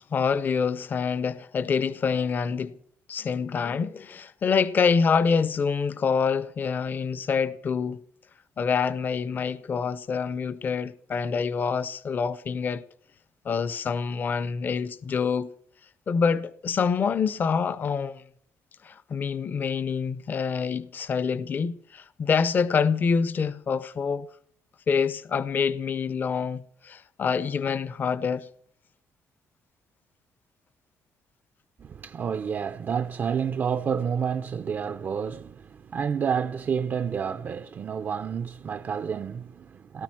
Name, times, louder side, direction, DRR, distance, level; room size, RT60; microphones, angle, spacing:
voice 1, 0.1-2.8 3.1-8.0 8.6-12.8 13.4-15.5 16.1-18.2 18.8-24.3 24.9-28.5, left 6 dB, 35° left, 0.7 m, -26 dB
voice 2, 31.8-40.0, right 7 dB, 35° right, 0.6 m, -29 dB
17.5 x 13.5 x 6.1 m
cardioid pair, 160°, 6 cm